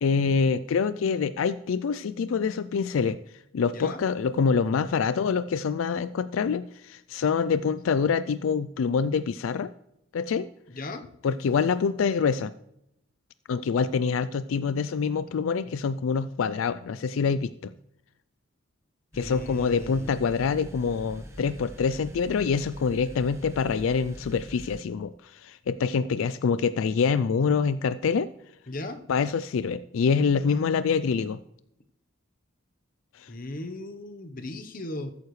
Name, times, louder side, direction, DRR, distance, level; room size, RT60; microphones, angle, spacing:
voice 1, 0.0-3.2 3.5-9.7 10.1-10.5 11.2-12.5 13.5-17.7 19.1-28.3 29.1-31.4 33.1-33.3, left 5 dB, 80° left, 14 dB, 0.4 m, -26 dB
voice 2, 3.7-4.0 10.7-11.0 15.7-15.8 19.1-20.1 28.7-29.0 30.5-30.8 33.3-35.1, left 2 dB, 40° left, 8 dB, 0.9 m, -37 dB
sound 1, 19.1-24.8, equal, 15° right, 1.1 m, -44 dB
13.5 x 9.4 x 3.2 m, 0.80 s
head